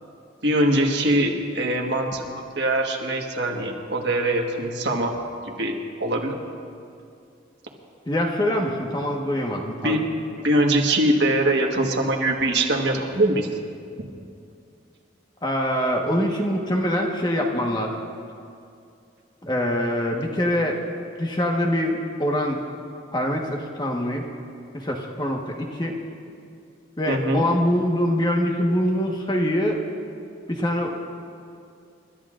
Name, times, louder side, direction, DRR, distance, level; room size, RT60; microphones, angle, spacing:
voice 1, 0.4-2.2 2.5-5.1 5.6-6.4 9.8-10.0 10.4-13.5 27.1-27.4, right 1 dB, 65° right, 1 dB, 1.5 m, -22 dB
voice 2, 8.1-10.0 15.4-17.9 19.4-20.8 21.2-22.6 23.1-24.2 24.7-26.0 27.0-29.8 30.5-31.1, equal, 25° left, 1 dB, 1.3 m, -24 dB
30.0 x 13.0 x 2.5 m, 2.4 s
head